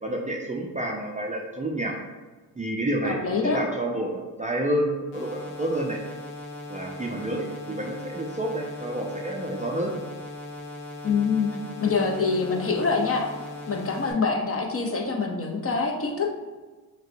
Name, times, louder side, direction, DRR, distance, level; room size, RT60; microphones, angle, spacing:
voice 1, 0.0-1.9 2.6-6.0 6.7-9.9, right 1 dB, 15° right, -1 dB, 0.4 m, -29 dB
voice 2, 3.0-3.6 11.0-11.5 11.8-13.3 13.7-16.3, left 4 dB, 30° left, 1 dB, 0.7 m, -25 dB
sound 1, 5.1-14.1, left 2 dB, 80° left, 0.9 m, -39 dB
6.2 x 2.2 x 2.6 m, 1.3 s
supercardioid pair, 60°, 47 cm